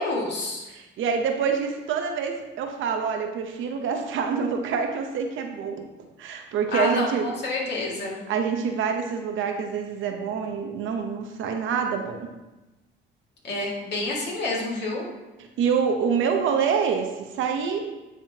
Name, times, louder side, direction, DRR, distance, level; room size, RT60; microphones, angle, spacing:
voice 1, 0.0-0.6 6.7-8.2 13.4-15.1, left 2 dB, 60° left, -3 dB, 1.9 m, -28 dB
voice 2, 0.7-5.9 6.2-7.3 8.3-12.3 15.6-17.9, right 6 dB, 80° right, 4 dB, 0.8 m, -26 dB
9.5 x 3.6 x 2.8 m, 1.1 s
cardioid pair, 90°, 20 cm